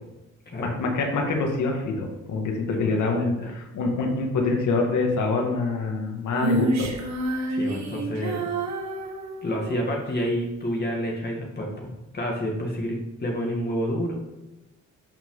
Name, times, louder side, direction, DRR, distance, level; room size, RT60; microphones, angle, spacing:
voice 1, 0.6-6.9, left 3 dB, 75° left, 1 dB, 2.4 m, -25 dB
voice 2, 2.7-3.5 7.5-8.4 9.4-14.2, equal, 35° left, -1 dB, 2.3 m, -29 dB
Female singing, 6.4-9.9, right 2 dB, 60° right, 1.9 m, -28 dB
12.5 x 6.0 x 4.1 m, 0.98 s
cardioid pair, 90°, 30 cm